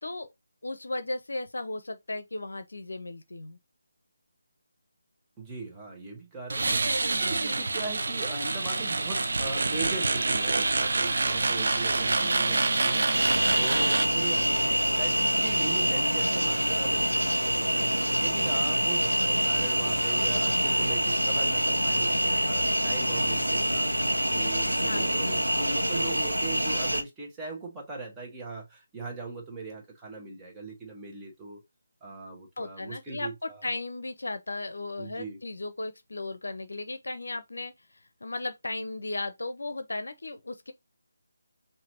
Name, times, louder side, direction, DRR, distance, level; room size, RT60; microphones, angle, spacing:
voice 1, 0.6-3.6 12.2-12.8 24.8-25.4 32.6-40.7, left 2 dB, 60° left, 0.7 m, -36 dB
voice 2, 5.4-13.1 13.6-14.5 15.0-23.9 24.3-31.6 32.0-33.6 35.0-35.4, right 3 dB, 10° right, 1.3 m, -40 dB
sound 1, 6.5-14.1, right 3 dB, 55° right, 0.7 m, -26 dB
sound 2, 13.1-27.0, equal, 90° right, 1.1 m, -26 dB
5.7 x 2.7 x 2.9 m
figure-of-eight pair, 150°, 0 cm